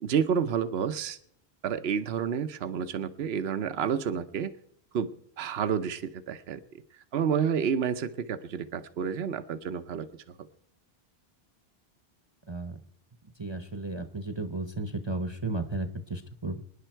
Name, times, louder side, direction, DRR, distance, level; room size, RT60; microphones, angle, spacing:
voice 1, 0.0-1.2 1.6-4.5 4.9-6.6 7.1-10.1, right 7 dB, 75° right, 11 dB, 1.0 m, -29 dB
voice 2, 12.5-12.8 13.4-16.6, right 2 dB, 30° right, 8 dB, 0.9 m, -34 dB
26.0 x 10.0 x 4.5 m, 0.68 s
omnidirectional pair, 1.1 m